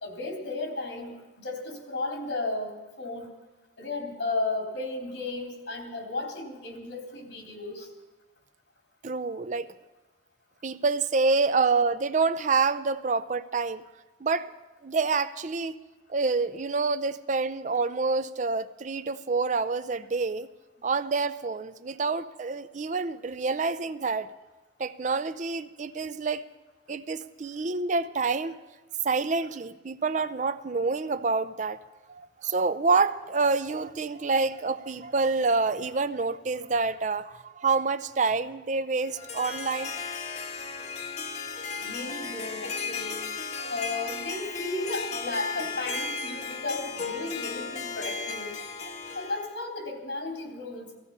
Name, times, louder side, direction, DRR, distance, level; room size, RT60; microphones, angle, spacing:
voice 1, 0.0-3.3 3.8-7.9 41.8-43.2 43.7-48.6 49.1-51.0, left 2 dB, 85° left, 1 dB, 3.6 m, -34 dB
voice 2, 9.0-9.7 10.6-13.8 14.2-14.5 14.8-15.8 16.1-20.5 20.8-24.3 24.8-26.4 26.9-28.6 29.0-31.8 32.1-39.9 43.6-43.7, right 4 dB, 45° right, 13 dB, 0.5 m, -27 dB
Harp, 39.0-49.5, left 5 dB, 40° left, 1.2 m, -35 dB
17.0 x 15.5 x 5.4 m, 1.1 s
head